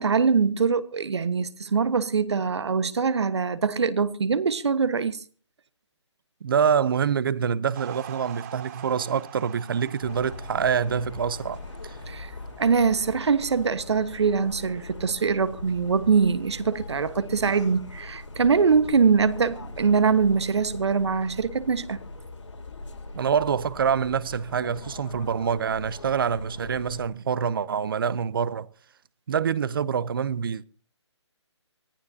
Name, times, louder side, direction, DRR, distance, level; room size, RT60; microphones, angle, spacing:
voice 1, 0.0-5.2 12.1-12.3 12.6-22.0, right 5 dB, 65° right, 1.3 m, -23 dB
voice 2, 6.4-12.0 23.1-28.7 29.3-30.6, right 7 dB, 50° right, 0.7 m, -26 dB
sound 1, 7.8-14.2, right 11 dB, 35° right, 3.0 m, -45 dB
sound 2, 10.0-27.1, left 2 dB, 80° left, 3.8 m, -41 dB
24.5 x 15.0 x 2.8 m
hypercardioid pair, 155°, 15 cm